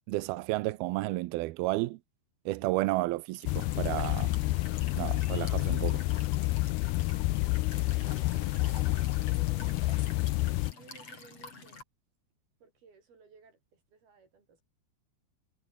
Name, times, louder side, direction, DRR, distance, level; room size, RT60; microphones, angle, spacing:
voice 1, 0.1-2.0 2.5-4.3 5.0-6.0, right 19 dB, 80° right, 2.3 m, -32 dB
Walk footsteps / Chirp tweet / Stream, 3.3-11.8, left 4 dB, 35° left, 6.5 m, -48 dB
sound 1, 3.5-10.7, left 21 dB, 80° left, 2.4 m, -29 dB
voice 2, 7.7-10.0 10.8-11.8 12.6-14.6, right 5 dB, 60° right, 7.8 m, -58 dB
omnidirectional pair, 5.0 m